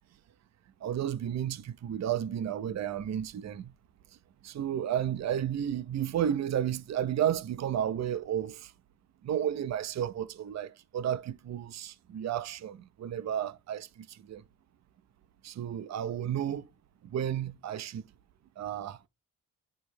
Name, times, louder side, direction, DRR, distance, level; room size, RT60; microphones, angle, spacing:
voice 1, 0.8-3.7 4.4-8.7 9.2-13.9 14.3-14.4 15.4-16.7 17.1-18.0 18.6-19.0, right 10 dB, 50° right, 0.5 m, -32 dB
8.8 x 3.1 x 4.7 m
wide cardioid pair, 175°, 34 cm